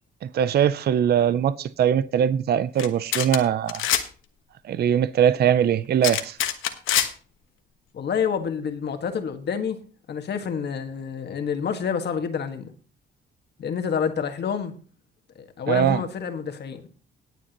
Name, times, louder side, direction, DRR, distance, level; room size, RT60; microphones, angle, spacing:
voice 1, 0.3-3.8 4.7-6.4 15.7-16.0, right 9 dB, 55° right, 0.5 m, -21 dB
sound 1, 2.8-2.9 3.1-3.4 3.7-4.0 6.0-7.1, left 11 dB, 85° left, 1.3 m, -23 dB
voice 2, 7.9-9.8 10.1-12.7 13.6-14.7 15.6-16.9, left 7 dB, 55° left, 1.7 m, -28 dB
19.0 x 7.3 x 3.0 m
cardioid pair, 90°, 20 cm